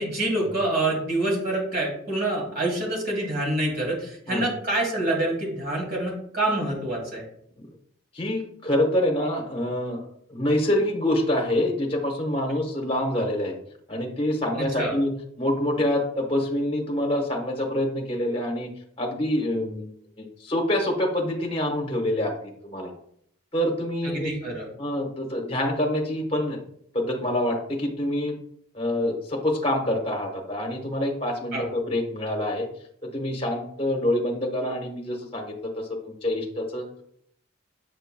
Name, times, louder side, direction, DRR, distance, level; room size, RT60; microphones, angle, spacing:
voice 1, 0.0-7.2 14.6-14.9 24.0-24.6 31.5-31.7, right 2 dB, 45° right, -1 dB, 2.3 m, -26 dB
voice 2, 8.1-10.0 10.3-13.5 13.9-15.1 15.4-18.7 19.0-19.9 20.2-22.3 22.6-22.9 23.5-24.3 24.8-26.6 26.9-28.3 28.7-32.7 33.1-36.8, left 1 dB, 25° left, 1 dB, 1.0 m, -26 dB
7.8 x 5.5 x 2.2 m, 0.68 s
head